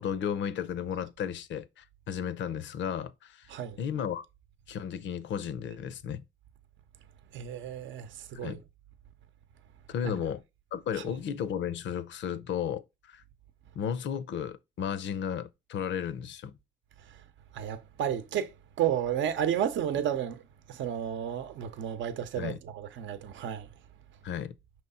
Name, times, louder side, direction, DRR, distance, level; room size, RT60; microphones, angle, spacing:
voice 1, 0.0-3.5 3.8-4.2 4.7-6.2 8.4-8.6 9.9-10.4 10.7-13.2 13.7-16.6 22.4-22.6 24.2-24.5, left 8 dB, 70° left, 0.7 m, -34 dB
voice 2, 7.3-8.6 10.0-10.1 17.5-20.4 20.7-23.7, right 9 dB, 70° right, 0.7 m, -32 dB
5.5 x 3.1 x 5.5 m
cardioid pair, 90°, 20 cm